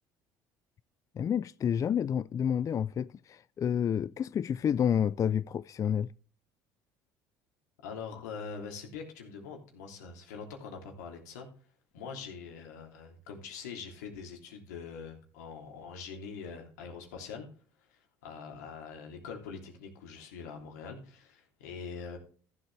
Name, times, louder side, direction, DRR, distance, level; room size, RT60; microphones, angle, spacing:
voice 1, 1.2-6.1, left 8 dB, 40° left, 0.4 m, -29 dB
voice 2, 7.8-11.5 11.9-17.5 17.9-22.2, left 5 dB, 90° left, 3.1 m, -43 dB
14.5 x 7.7 x 3.3 m
supercardioid pair, 75°, 9 cm